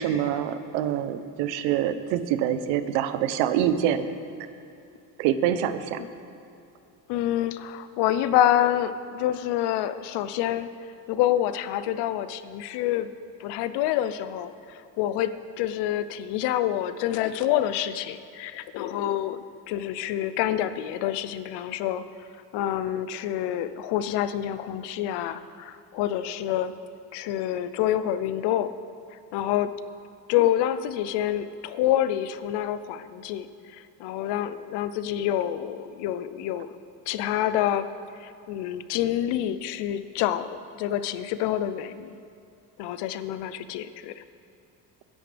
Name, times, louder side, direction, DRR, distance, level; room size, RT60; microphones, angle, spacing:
voice 1, 0.0-4.0 5.2-6.0, right 10 dB, 85° right, 11 dB, 0.9 m, -25 dB
voice 2, 7.1-10.7 11.1-13.1 13.4-22.0 22.5-26.7 27.1-28.7 29.3-29.7 30.3-33.5 33.7-36.7 37.1-37.9 38.2-40.5 40.8-42.2 42.8-44.2, left 12 dB, 75° left, 13 dB, 0.8 m, -27 dB
21.0 x 10.5 x 3.4 m, 2.6 s
cardioid pair, 135°, 41 cm